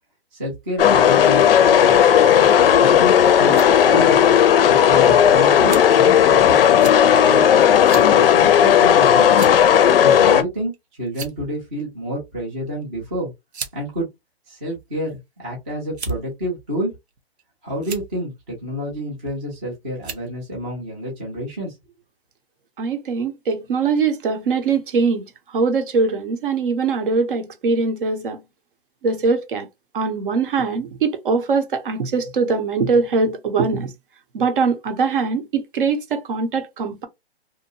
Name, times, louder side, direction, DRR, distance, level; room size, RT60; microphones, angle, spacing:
voice 1, 0.3-2.0 2.6-4.2 4.7-6.9 7.2-7.5 7.9-9.5 10.0-10.7 11.0-13.3 13.7-14.1 14.5-16.9 17.6-21.7, equal, 10° right, 0.4 m, -29 dB
sound 1, 0.8-10.4, left 9 dB, 65° left, 0.5 m, -14 dB
sound 2, 3.4-3.7 4.5-4.6 5.7-6.0 6.8-7.0 7.9-8.1 8.5-8.6 9.3-9.7 10.6-10.8 11.1-11.6 12.7-12.8 13.5-13.8 14.6-15.2 15.9-16.3 17.1-17.4 17.8-18.1 19.3-19.6 20.0-20.3, right 6 dB, 85° right, 0.9 m, -35 dB
voice 2, 22.8-25.2 25.5-28.4 29.0-29.7 29.9-33.9 34.3-37.1, right 4 dB, 55° right, 0.7 m, -22 dB
2.7 x 2.2 x 2.6 m
hypercardioid pair, 150°, 32 cm